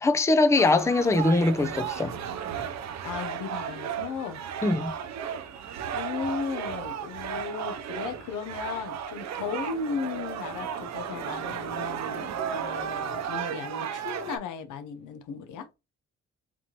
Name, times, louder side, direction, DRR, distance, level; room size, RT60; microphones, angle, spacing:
voice 1, 0.0-2.2 4.6-4.9, left 2 dB, 10° left, 0.5 m, -22 dB
sound 1, 0.6-14.4, right 8 dB, 60° right, 0.6 m, -34 dB
voice 2, 3.0-4.4 5.9-15.7, left 6 dB, 85° left, 0.8 m, -36 dB
4.2 x 2.9 x 2.9 m
cardioid pair, 90°, 30 cm